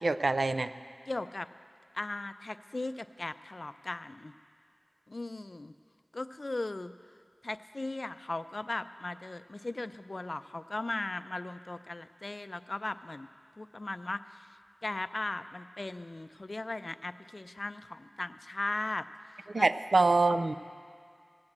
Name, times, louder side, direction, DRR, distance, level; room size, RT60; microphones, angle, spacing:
voice 1, 0.0-0.7 19.5-20.5, right 3 dB, 75° right, 11 dB, 0.4 m, -25 dB
voice 2, 1.1-1.5 1.9-4.3 5.1-5.7 6.1-6.9 7.4-13.3 13.6-14.5 14.8-19.1 19.5-19.7, left 2 dB, 55° left, 12 dB, 0.4 m, -37 dB
17.5 x 7.8 x 7.3 m, 2.2 s
wide cardioid pair, 60°, 0 cm